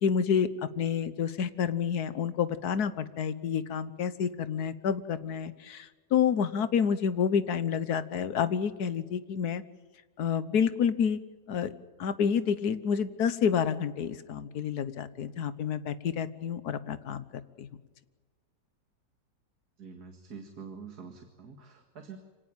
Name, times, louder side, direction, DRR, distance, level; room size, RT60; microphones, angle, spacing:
voice 1, 0.0-9.6 10.2-11.2 11.5-11.7 12.0-17.2 17.6-17.7, left 7 dB, 65° left, 14 dB, 1.5 m, -29 dB
voice 2, 19.8-22.2, right 6 dB, 60° right, 4 dB, 2.5 m, -46 dB
25.0 x 18.0 x 9.0 m, 1.4 s
omnidirectional pair, 1.9 m